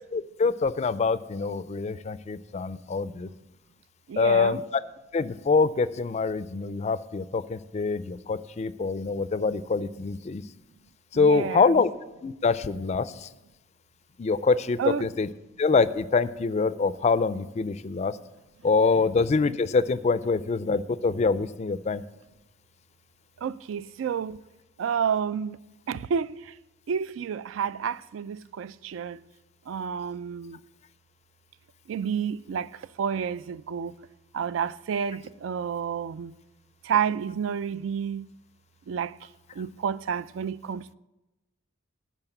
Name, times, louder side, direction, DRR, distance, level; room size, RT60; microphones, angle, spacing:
voice 1, 0.1-3.3 4.2-4.6 5.1-10.4 11.1-11.9 12.2-13.3 14.2-15.3 15.6-18.2 18.6-22.0, left 4 dB, 35° left, 0.3 m, -25 dB
voice 2, 4.1-4.6 11.1-11.7 14.8-15.1 18.9-19.0 23.4-24.4 24.8-25.6 25.9-26.5 26.9-29.2 29.7-30.6 31.9-34.0 34.3-36.3 36.8-38.3 38.9-39.2 39.5-40.9, right 7 dB, 80° right, 0.3 m, -30 dB
11.5 x 4.5 x 7.9 m
head